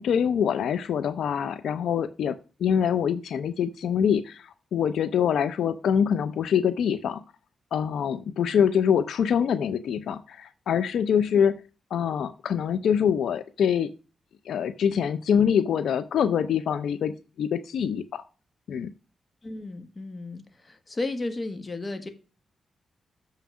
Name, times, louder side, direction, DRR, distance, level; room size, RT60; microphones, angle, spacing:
voice 1, 0.0-2.3 2.6-7.2 7.7-11.6 11.9-13.9 14.5-18.2 18.7-18.9, left 8 dB, 85° left, 12 dB, 0.5 m, -25 dB
voice 2, 19.4-22.1, left 2 dB, 30° left, 8 dB, 1.5 m, -34 dB
6.9 x 5.7 x 6.1 m, 0.34 s
cardioid pair, 75°, 0 cm